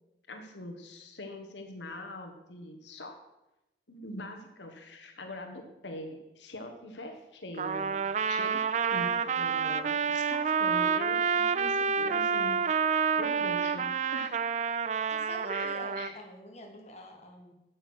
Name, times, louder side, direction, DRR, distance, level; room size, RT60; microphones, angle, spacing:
voice 1, 0.3-3.1 3.9-8.7 8.9-14.4 15.5-16.1, left 1 dB, 85° left, 5 dB, 1.3 m, -43 dB
Trumpet, 7.6-16.1, right 6 dB, 40° right, 0.3 m, -28 dB
voice 2, 15.1-17.5, left 1 dB, 35° left, 2 dB, 1.5 m, -46 dB
8.8 x 8.0 x 6.3 m, 0.94 s
head